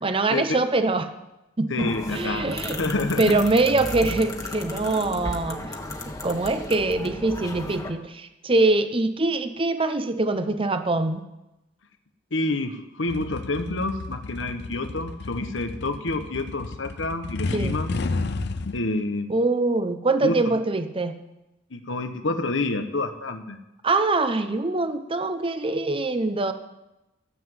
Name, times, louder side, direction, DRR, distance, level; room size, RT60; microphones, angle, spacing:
voice 1, 0.0-1.1 1.6-2.8 3.2-5.6 6.2-11.2 17.5-17.8 19.3-21.2 23.8-26.5, right 2 dB, 30° right, 9 dB, 0.8 m, -23 dB
voice 2, 1.7-2.5 2.8-3.4 12.3-17.9 18.7-19.4 20.2-20.6 21.7-23.6, left 2 dB, 85° left, 8 dB, 1.2 m, -28 dB
sound 1, 1.8-7.9, left 1 dB, 20° left, 1.4 m, -34 dB
sound 2, 13.1-18.8, left 3 dB, 60° left, 0.7 m, -32 dB
14.0 x 7.6 x 7.8 m, 0.94 s
head